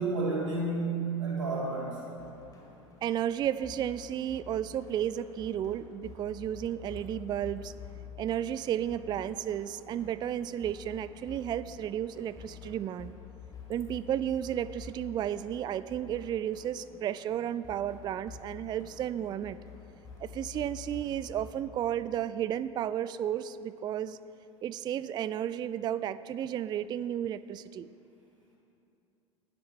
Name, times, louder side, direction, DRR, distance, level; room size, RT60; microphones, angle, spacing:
voice 1, 0.0-2.0, right 3 dB, 80° right, -5 dB, 3.4 m, -31 dB
sound 1, 2.2-21.7, left 6 dB, 20° left, 2.8 m, -49 dB
voice 2, 3.0-7.7 8.2-13.1 13.7-19.6 20.2-24.2 24.6-27.9, right 10 dB, 25° right, 16 dB, 0.3 m, -33 dB
20.0 x 12.5 x 3.3 m, 2.7 s
figure-of-eight pair, 70°, 16 cm